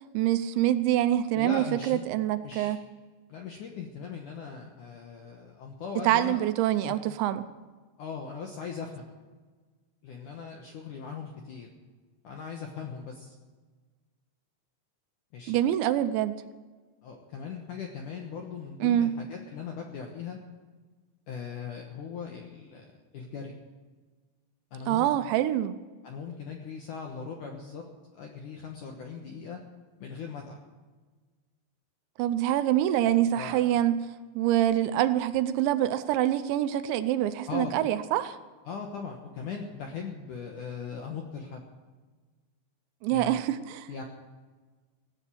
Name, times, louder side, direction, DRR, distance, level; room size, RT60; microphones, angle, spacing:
voice 1, 0.1-2.8 6.0-7.5 15.5-16.4 18.8-19.1 24.9-25.8 32.2-34.0 34.4-38.4 43.0-43.9, right 12 dB, 80° right, 11 dB, 2.9 m, -25 dB
voice 2, 1.3-2.0 2.4-2.8 3.3-6.4 6.8-7.0 8.0-9.1 10.0-11.7 12.2-13.4 15.3-15.6 17.0-20.4 21.3-22.9 23.1-23.5 24.7-25.1 26.0-27.8 28.1-29.6 30.0-30.6 33.3-33.7 37.2-37.9 38.7-41.6 43.1-43.4 43.9-44.0, left 6 dB, 70° left, 1 dB, 1.9 m, -39 dB
17.0 x 8.0 x 9.2 m, 1.3 s
omnidirectional pair, 5.3 m